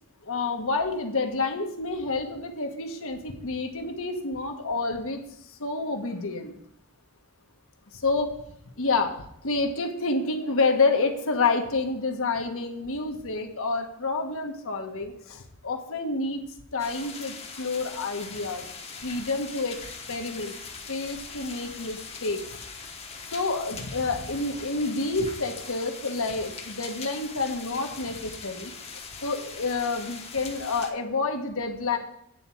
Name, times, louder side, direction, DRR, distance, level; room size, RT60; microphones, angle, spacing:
voice 1, 0.2-5.2 5.6-6.5 8.0-8.4 8.8-9.2 9.4-16.4 16.7-18.6 19.0-19.8 20.1-20.5 20.9-22.4 23.3-28.7 29.2-32.0, left 3 dB, 65° left, 4 dB, 1.3 m, -28 dB
sound 1, 16.8-30.9, left 5 dB, 30° left, 1.1 m, -41 dB
9.1 x 4.4 x 7.4 m, 0.75 s
head